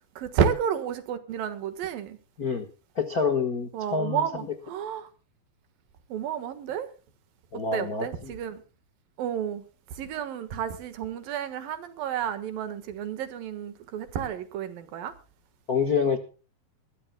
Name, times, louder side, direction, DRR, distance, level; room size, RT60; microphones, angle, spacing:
voice 1, 0.2-2.2 3.7-5.1 6.1-6.9 7.5-8.6 9.2-9.6 9.9-15.1, right 8 dB, 75° right, 3.2 m, -31 dB
voice 2, 2.9-4.2 7.5-8.3 15.7-16.2, left 5 dB, 90° left, 0.8 m, -27 dB
21.0 x 15.5 x 2.3 m
omnidirectional pair, 4.2 m